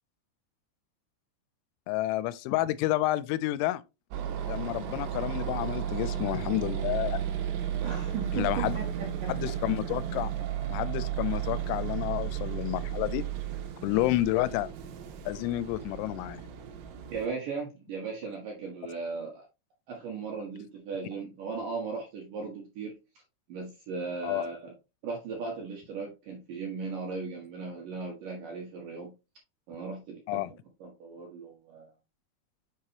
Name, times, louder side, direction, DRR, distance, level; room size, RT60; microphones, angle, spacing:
voice 1, 1.9-3.8 4.5-7.2 8.3-8.8 9.3-10.3 10.7-13.3 13.8-14.7 15.3-16.4 24.2-24.5 30.3-30.5, left 16 dB, 90° left, 3.0 m, -30 dB
sound 1, 4.1-17.3, right 10 dB, 85° right, 3.2 m, -34 dB
voice 2, 7.8-9.6 13.9-14.0 17.1-19.5 19.9-23.0 23.5-24.7 25.0-29.1 29.7-30.4 30.8-31.9, right 4 dB, 70° right, 2.2 m, -37 dB
7.3 x 4.8 x 2.8 m
omnidirectional pair, 5.4 m